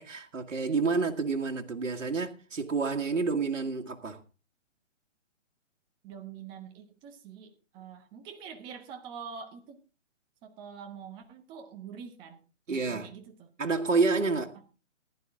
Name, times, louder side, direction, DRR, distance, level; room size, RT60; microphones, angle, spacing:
voice 1, 0.0-4.2 12.7-13.1 13.6-14.6, right 4 dB, 90° right, 1.8 m, -29 dB
voice 2, 6.0-9.8 10.4-12.4 12.7-13.5, right 7 dB, 15° right, 1.2 m, -45 dB
15.0 x 11.0 x 3.7 m
hypercardioid pair, 155°, 37 cm